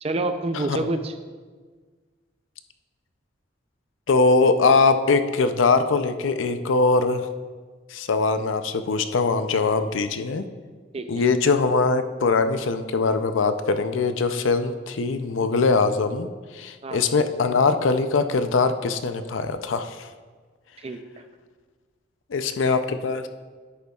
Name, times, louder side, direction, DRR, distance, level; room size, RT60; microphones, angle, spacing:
voice 1, 0.0-1.1 10.9-11.1 16.8-17.2 20.8-21.2, right 2 dB, 30° right, 8 dB, 0.5 m, -28 dB
voice 2, 4.1-7.3 7.9-10.5 11.1-20.1 22.3-23.3, left 4 dB, 85° left, 9 dB, 0.5 m, -22 dB
10.0 x 8.2 x 2.4 m, 1.4 s
head